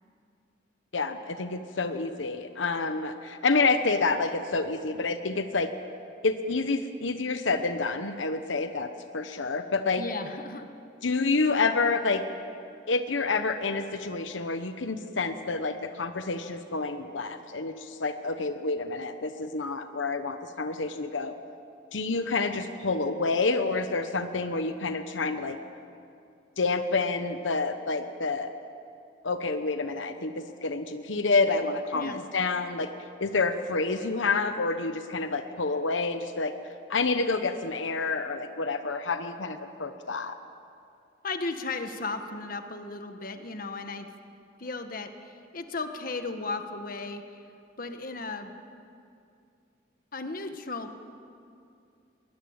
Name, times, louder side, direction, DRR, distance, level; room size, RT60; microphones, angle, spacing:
voice 1, 0.9-5.7 6.2-10.0 11.0-12.2 12.9-21.3 21.9-25.6 26.6-28.5 29.2-32.9 33.2-36.5 36.9-40.4, left 3 dB, 90° left, 8 dB, 1.1 m, -28 dB
voice 2, 10.0-10.7 31.9-32.2 41.2-44.1 44.6-47.4 47.8-48.8 50.1-51.0, left 3 dB, 50° left, 7 dB, 1.5 m, -35 dB
22.0 x 20.0 x 8.8 m, 2.5 s
head